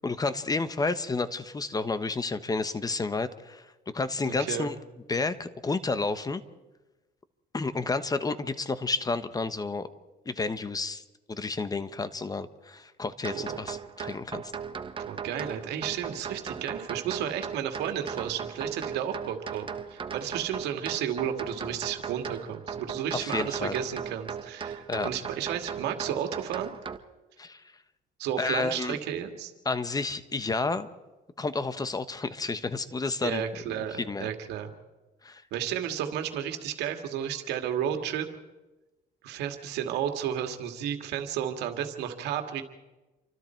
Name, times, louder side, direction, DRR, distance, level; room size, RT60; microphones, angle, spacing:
voice 1, 0.0-3.7 3.9-4.8 5.1-6.4 7.5-9.9 10.3-11.0 11.3-14.4 23.1-23.8 24.9-25.1 27.4-27.6 28.4-29.0 29.6-30.9 31.4-33.4 34.0-34.3 35.2-35.4, left 3 dB, 20° left, 12 dB, 1.2 m, -30 dB
voice 2, 4.2-4.7 13.3-13.5 15.1-26.7 28.2-29.5 33.2-34.7 35.5-38.3 39.2-42.6, right 9 dB, 85° right, 6 dB, 2.3 m, -32 dB
sound 1, 13.2-27.0, right 6 dB, 30° right, 1.4 m, -38 dB
28.0 x 25.0 x 4.6 m, 1.1 s
cardioid pair, 110°, 17 cm